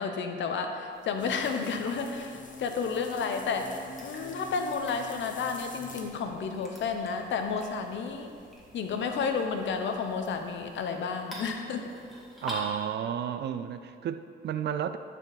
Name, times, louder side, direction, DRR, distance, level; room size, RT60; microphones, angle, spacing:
voice 1, 0.0-3.7 4.0-8.3 8.7-11.9, left 5 dB, 65° left, 5 dB, 0.9 m, -31 dB
sound 1, 0.9-12.7, right 1 dB, ahead, 2.0 m, -48 dB
sound 2, 1.2-10.8, left 3 dB, 40° left, 0.9 m, -48 dB
voice 2, 12.4-15.0, right 9 dB, 60° right, 11 dB, 0.4 m, -32 dB
11.5 x 4.6 x 4.1 m, 2.3 s
cardioid pair, 90°, 20 cm